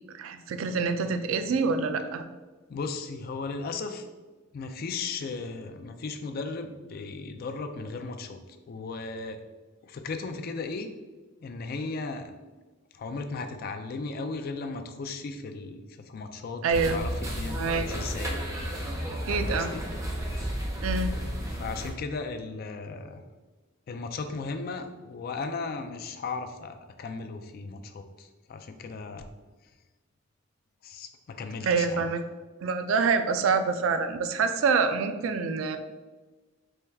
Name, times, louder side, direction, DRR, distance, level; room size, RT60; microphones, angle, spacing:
voice 1, 0.1-2.2 16.6-17.0 17.5-17.8 19.1-19.7 20.8-21.1 31.6-32.2 32.6-35.8, right 5 dB, 80° right, 8 dB, 0.3 m, -26 dB
voice 2, 2.7-4.1 4.5-8.4 8.7-9.4 9.8-10.9 11.4-12.3 12.9-18.3 18.6-19.0 19.3-19.9 20.2-20.3 21.5-23.2 23.9-29.3 29.6-29.7 30.8-32.1, left 4 dB, 50° left, 7 dB, 0.3 m, -36 dB
sound 1, 16.7-21.9, equal, 15° right, 0.5 m, -32 dB
4.4 x 2.3 x 3.3 m, 1.3 s
head